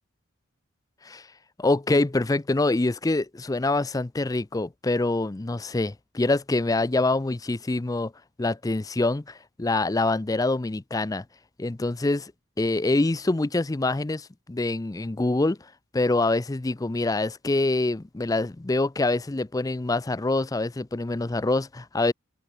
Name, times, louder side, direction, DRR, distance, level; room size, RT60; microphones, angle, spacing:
voice 1, 1.6-8.1 8.4-11.2 11.6-12.3 12.6-15.6 15.9-22.1, left 2 dB, 15° left, 0.4 m, -25 dB
head